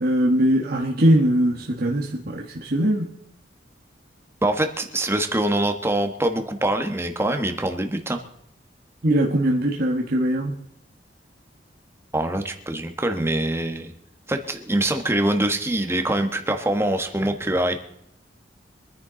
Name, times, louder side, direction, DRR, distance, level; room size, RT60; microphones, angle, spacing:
voice 1, 0.0-3.1 9.0-10.5, right 1 dB, 55° right, -1 dB, 1.4 m, -21 dB
voice 2, 4.4-8.2 12.1-13.9 14.3-17.8, right 1 dB, 15° right, 5 dB, 1.3 m, -24 dB
25.0 x 10.0 x 3.9 m, 0.74 s
head